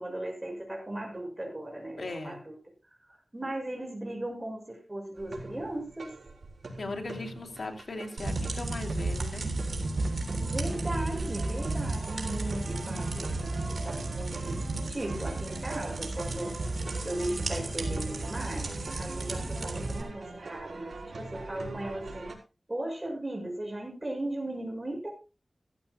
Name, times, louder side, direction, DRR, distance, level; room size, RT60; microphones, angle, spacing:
voice 1, 0.0-2.5 3.1-6.1 10.4-14.6 14.9-16.6 17.0-22.3 22.7-25.1, right 1 dB, 25° right, 1 dB, 6.3 m, -37 dB
voice 2, 2.0-2.4 6.8-9.5, left 2 dB, 70° left, 3 dB, 3.0 m, -38 dB
sound 1, 5.2-22.4, right 3 dB, 85° right, 3.9 m, -43 dB
sound 2, 8.2-20.0, right 2 dB, 70° right, 3.5 m, -33 dB
15.5 x 14.5 x 2.3 m, 0.29 s
wide cardioid pair, 75°, 0 cm